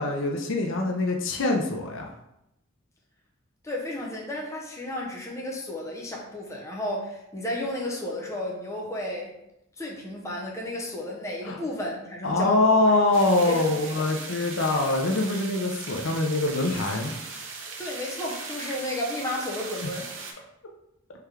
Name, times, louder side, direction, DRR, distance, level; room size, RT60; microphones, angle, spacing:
voice 1, 0.0-2.1 11.4-11.6 12.2-17.1, left 2 dB, 75° left, 2 dB, 0.6 m, -24 dB
voice 2, 3.6-9.3 9.8-12.8 13.5-13.6 14.3-14.4 17.8-20.1, left 1 dB, 15° left, -2 dB, 0.6 m, -33 dB
sound 1, 13.1-20.3, right 4 dB, 70° right, 0.6 m, -38 dB
3.5 x 3.4 x 3.3 m, 0.83 s
head